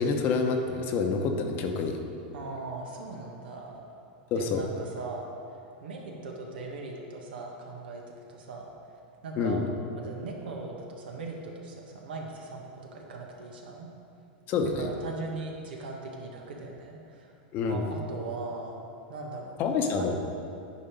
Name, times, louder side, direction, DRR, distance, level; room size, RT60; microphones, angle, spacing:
voice 1, 0.0-2.0 4.3-4.6 9.4-9.6 14.5-14.9 17.5-17.9 19.6-20.2, left 4 dB, 40° left, 4 dB, 0.9 m, -27 dB
voice 2, 2.3-3.7 4.4-5.3 5.8-8.0 8.3-8.6 9.2-9.6 9.9-12.6 12.9-13.9 14.8-17.3 17.6-18.8 19.1-20.1, right 3 dB, 90° right, 0 dB, 1.6 m, -39 dB
9.7 x 5.2 x 5.2 m, 2.6 s
supercardioid pair, 140°, 5 cm